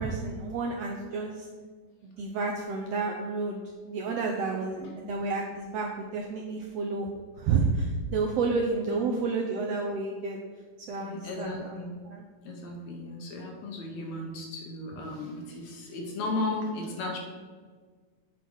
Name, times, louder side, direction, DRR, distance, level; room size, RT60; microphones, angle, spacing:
voice 1, 0.0-1.4 2.2-3.6 3.8-7.1 7.4-10.4 10.9-11.8 12.0-12.2, right 4 dB, 75° right, 0 dB, 1.5 m, -30 dB
voice 2, 8.2-8.6 8.9-9.2 11.0-12.0 12.4-17.2, left 2 dB, 65° left, 1 dB, 2.1 m, -35 dB
8.1 x 5.4 x 5.5 m, 1.6 s
omnidirectional pair, 3.7 m